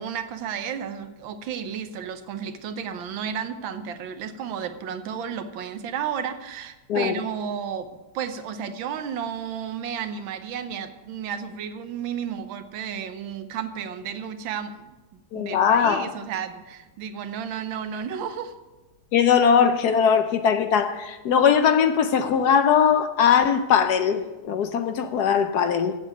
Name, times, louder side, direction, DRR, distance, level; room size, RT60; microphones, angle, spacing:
voice 1, 0.0-7.9 8.1-18.5, right 8 dB, 70° right, 9 dB, 1.5 m, -32 dB
voice 2, 15.3-16.1 19.1-26.0, left 7 dB, 70° left, 9 dB, 1.0 m, -20 dB
8.0 x 7.5 x 8.6 m, 1.1 s
omnidirectional pair, 2.3 m